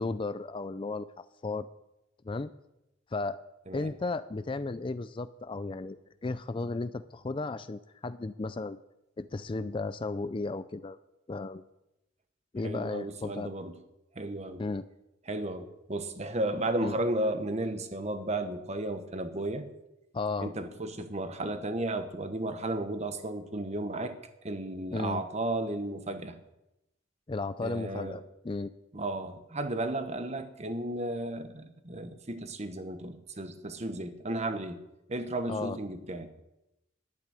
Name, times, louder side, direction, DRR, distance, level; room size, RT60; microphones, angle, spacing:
voice 1, 0.0-1.7 2.2-2.5 3.1-3.4 3.7-6.0 6.2-8.8 9.2-11.0 11.3-11.7 12.5-13.5 14.6-14.8 16.8-17.0 20.1-20.5 24.9-25.2 27.3-28.7 35.5-35.8, left 3 dB, 25° left, 13 dB, 0.4 m, -34 dB
voice 2, 12.6-13.7 14.1-14.6 15.3-19.6 20.4-24.2 24.4-26.4 27.6-28.2 28.9-34.8 35.1-36.3, right 1 dB, 35° right, 9 dB, 1.2 m, -34 dB
11.0 x 9.2 x 9.8 m, 0.92 s
head